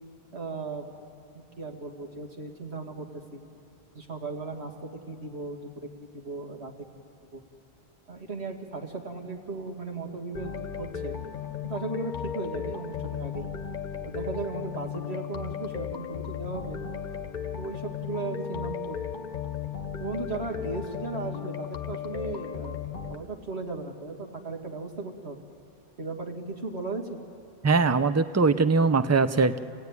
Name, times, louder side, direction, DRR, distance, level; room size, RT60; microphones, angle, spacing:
voice 1, 0.3-0.9 1.3-3.4 3.9-6.7 7.3-7.4 8.1-11.1 11.6-13.5 14.0-16.8 17.6-19.0 20.0-22.8 23.1-25.4 26.0-27.2, right 3 dB, 90° right, 2 dB, 2.2 m, -36 dB
sound 1, 10.3-23.2, left 8 dB, 50° left, 1.0 m, -35 dB
voice 2, 27.6-29.6, right 4 dB, 25° right, 12 dB, 0.4 m, -21 dB
28.0 x 16.0 x 9.5 m, 2.6 s
omnidirectional pair, 1.1 m